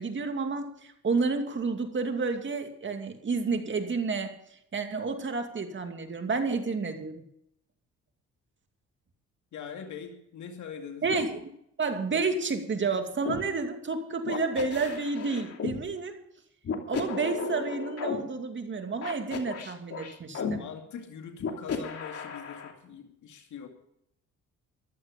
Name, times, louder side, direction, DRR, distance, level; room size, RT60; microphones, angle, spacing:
voice 1, 0.0-4.3 4.7-7.2 11.0-11.5 11.8-16.2 16.9-20.6, right 4 dB, 40° right, 5 dB, 2.5 m, -30 dB
voice 2, 9.5-11.3 20.3-23.7, left 7 dB, 70° left, 3 dB, 2.4 m, -42 dB
sound 1, 13.2-13.4 14.3-15.8 16.6-18.2 19.0-20.5 21.4-22.7, left 6 dB, 50° left, 2.8 m, -34 dB
15.0 x 11.5 x 5.3 m, 0.74 s
cardioid pair, 90°, 30 cm